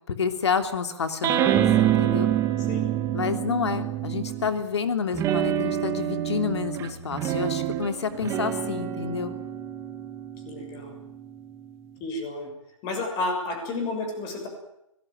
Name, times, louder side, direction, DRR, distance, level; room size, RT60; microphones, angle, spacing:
voice 1, 0.1-2.3 3.1-9.3, left 6 dB, 60° left, 8 dB, 3.1 m, -29 dB
sound 1, 1.2-4.6 5.1-11.9, right 11 dB, 20° right, 2.0 m, -27 dB
voice 2, 10.4-11.0 12.0-12.5 12.8-14.5, left 2 dB, 25° left, 5 dB, 6.8 m, -31 dB
24.5 x 18.5 x 9.2 m, 0.82 s
figure-of-eight pair, 135°, 17 cm